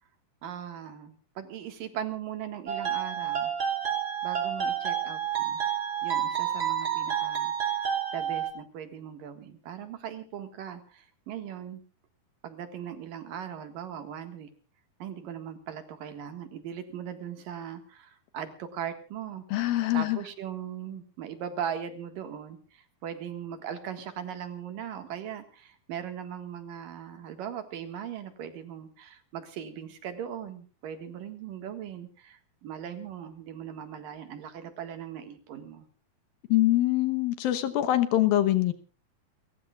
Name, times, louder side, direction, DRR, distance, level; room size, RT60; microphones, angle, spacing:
voice 1, 0.4-3.5 4.2-5.6 6.0-7.8 8.1-11.8 12.4-14.5 15.0-19.4 19.9-35.9, right 9 dB, 65° right, 8 dB, 3.2 m, -39 dB
sound 1, 2.7-8.5, right 9 dB, 35° right, 3.3 m, -29 dB
voice 2, 19.5-20.2 36.5-38.7, left 14 dB, 75° left, 12 dB, 2.8 m, -24 dB
30.0 x 14.5 x 2.4 m, 0.36 s
omnidirectional pair, 4.5 m